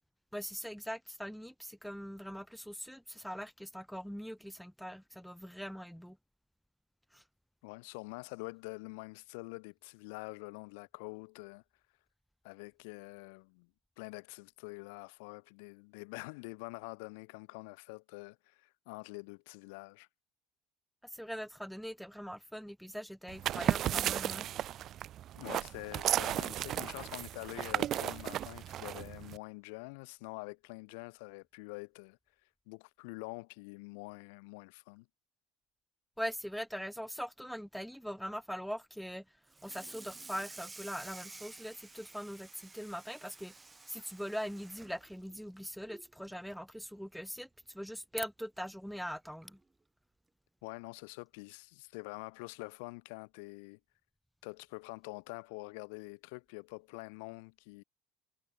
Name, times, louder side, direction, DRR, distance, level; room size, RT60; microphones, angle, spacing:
voice 1, 0.3-6.2 7.1-7.2 21.1-24.5 36.2-39.2 39.6-49.6, equal, ahead, 2.4 m, -42 dB
voice 2, 7.6-11.6 12.4-13.7 14.0-20.1 25.3-32.2 32.7-35.1 50.6-53.8 54.4-57.8, left 30 dB, 80° left, 4.8 m, -46 dB
sound 1, 23.3-29.4, right 12 dB, 55° right, 1.6 m, -34 dB
Water tap faucet / Sink (filling or washing), 39.5-46.1 46.5-46.8 47.1-47.2 47.6-47.7 48.8-48.9 49.4-49.6, right 3 dB, 20° right, 2.5 m, -52 dB
supercardioid pair, 85°, 0 cm